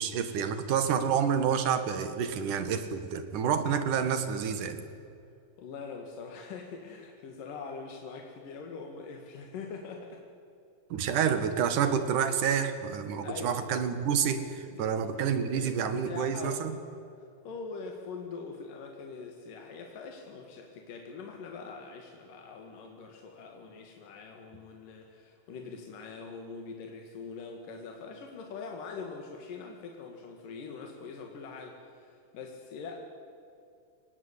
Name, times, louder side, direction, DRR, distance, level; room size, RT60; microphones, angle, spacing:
voice 1, 0.0-4.8 10.9-16.7, right 7 dB, 70° right, 10 dB, 3.1 m, -28 dB
voice 2, 5.6-10.2 13.2-13.7 14.3-16.7 17.5-33.0, left 4 dB, 75° left, 2 dB, 3.6 m, -43 dB
24.0 x 19.0 x 9.8 m, 2.5 s
omnidirectional pair, 3.8 m